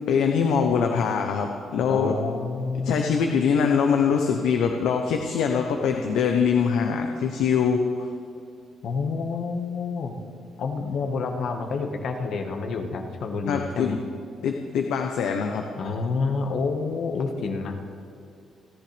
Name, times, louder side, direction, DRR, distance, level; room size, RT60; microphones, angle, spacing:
voice 1, 0.1-2.1 2.8-8.1 13.5-14.0 14.4-15.6, left 6 dB, 85° left, 3 dB, 0.9 m, -23 dB
voice 2, 1.9-3.2 8.8-10.2 10.6-14.0 15.8-17.8, left 4 dB, 65° left, 4 dB, 1.5 m, -28 dB
29.0 x 10.5 x 3.4 m, 2.4 s
cardioid pair, 90°, 0 cm